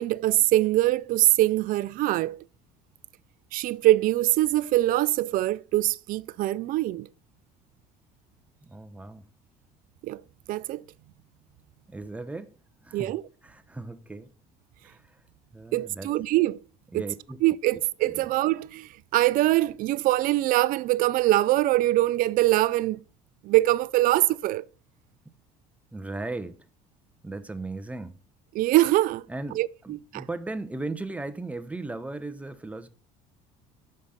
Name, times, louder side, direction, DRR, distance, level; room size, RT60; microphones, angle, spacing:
voice 1, 0.0-2.4 3.5-7.1 10.0-10.2 10.5-10.8 12.9-13.2 15.7-16.6 16.9-17.0 17.4-23.0 23.4-24.6 28.5-29.2 29.5-30.2, right 16 dB, 60° right, 0.4 m, -23 dB
voice 2, 8.6-9.3 11.9-12.5 12.8-13.1 13.4-14.3 14.8-15.2 15.5-16.1 16.9-17.4 18.0-18.1 25.2-25.3 25.9-26.7 27.2-28.2 29.3-32.9, right 2 dB, 10° right, 0.7 m, -37 dB
6.5 x 5.1 x 5.7 m
supercardioid pair, 85°, 16 cm